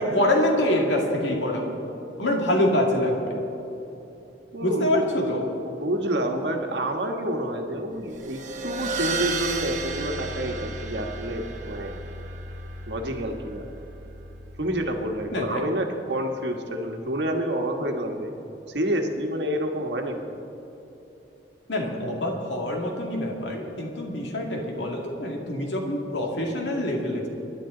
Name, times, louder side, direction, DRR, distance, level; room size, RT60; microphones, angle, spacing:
voice 1, 0.0-1.8 2.2-3.4 4.6-5.4 15.3-15.6 21.7-27.3, left 1 dB, 75° left, 0 dB, 2.2 m, -25 dB
voice 2, 4.5-5.0 5.6-12.0 12.9-13.7 14.6-18.4 18.7-20.3, right 1 dB, 70° right, 3 dB, 1.4 m, -28 dB
sound 1, 8.1-15.1, right 3 dB, 40° right, 1.1 m, -34 dB
25.0 x 11.0 x 3.9 m, 3.0 s
head